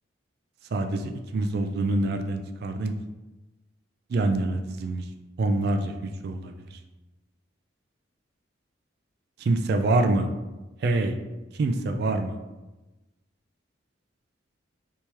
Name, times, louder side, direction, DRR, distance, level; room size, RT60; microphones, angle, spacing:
voice 1, 0.7-2.9 4.1-5.1 5.4-6.8 9.4-10.3 10.8-11.2 11.5-12.4, right 2 dB, 55° right, 6 dB, 0.3 m, -26 dB
3.4 x 2.9 x 2.9 m, 1.1 s
head